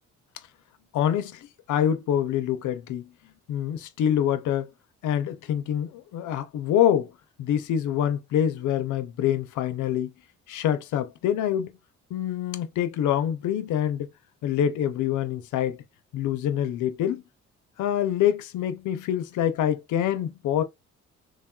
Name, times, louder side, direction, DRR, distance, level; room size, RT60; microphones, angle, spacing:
voice 1, 0.9-3.1 3.5-4.7 5.0-7.1 7.4-10.1 10.5-11.8 12.1-14.1 14.4-15.8 16.1-17.2 17.8-20.6, left 10 dB, 75° left, 0.6 m, -25 dB
3.3 x 2.3 x 2.2 m
cardioid pair, 90°, 30 cm